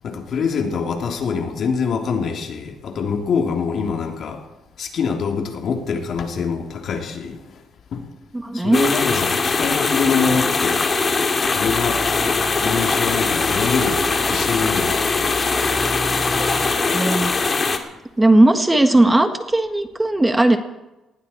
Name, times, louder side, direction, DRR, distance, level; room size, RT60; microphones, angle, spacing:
voice 1, 0.0-4.4 4.8-7.6 7.9-8.0 8.5-10.8 11.5-12.0 12.6-15.1, left 5 dB, 60° left, 3 dB, 3.0 m, -24 dB
voice 2, 8.3-9.0 16.9-17.3 18.2-20.6, right 1 dB, 15° right, 7 dB, 1.5 m, -17 dB
sound 1, 8.7-17.8, left 4 dB, 35° left, 2.0 m, -21 dB
sound 2, 11.6-16.8, equal, 15° left, 5.5 m, -33 dB
sound 3, 12.1-17.6, right 2 dB, 30° right, 6.5 m, -36 dB
19.5 x 16.5 x 4.5 m, 1.0 s
cardioid pair, 90°, 0 cm